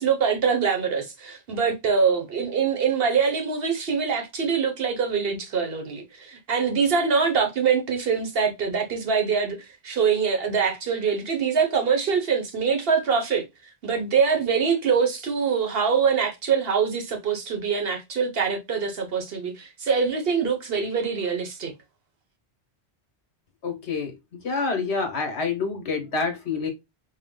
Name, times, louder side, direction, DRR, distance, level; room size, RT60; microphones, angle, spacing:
voice 1, 0.0-9.6 9.8-13.5 13.8-21.7, right 6 dB, 60° right, 1.0 m, -24 dB
voice 2, 23.6-24.1 24.4-26.7, left 4 dB, 70° left, 1.4 m, -27 dB
4.4 x 2.2 x 3.7 m
omnidirectional pair, 1.2 m